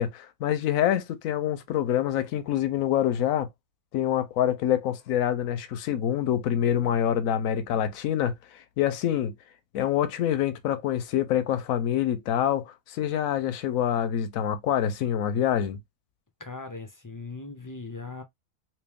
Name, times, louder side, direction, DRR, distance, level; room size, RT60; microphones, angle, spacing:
voice 1, 0.0-3.5 3.9-9.3 9.7-15.8, left 10 dB, 85° left, 1.0 m, -26 dB
voice 2, 16.4-18.2, left 3 dB, 25° left, 0.5 m, -39 dB
3.0 x 2.9 x 3.4 m
omnidirectional pair, 1.4 m